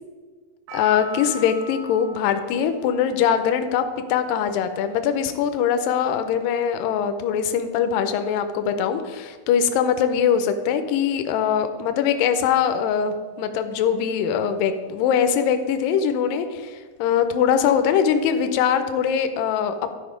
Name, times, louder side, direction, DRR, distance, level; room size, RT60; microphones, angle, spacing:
voice 1, 0.7-3.8 4.1-19.9, left 8 dB, 80° left, 9 dB, 2.1 m, -22 dB
Percussion, 0.7-5.0 5.7-5.8, equal, 80° right, 2.8 m, -40 dB
11.5 x 5.2 x 5.0 m, 1.5 s
omnidirectional pair, 4.5 m